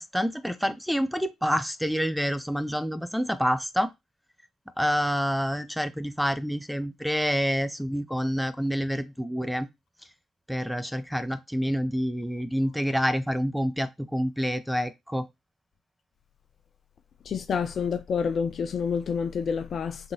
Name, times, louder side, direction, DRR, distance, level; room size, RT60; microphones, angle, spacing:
voice 1, 0.0-3.9 4.8-9.7 10.5-15.3, equal, ahead, 0.6 m, -27 dB
voice 2, 17.2-20.1, left 6 dB, 50° left, 0.5 m, -28 dB
3.8 x 3.7 x 2.9 m
figure-of-eight pair, 45°, 0 cm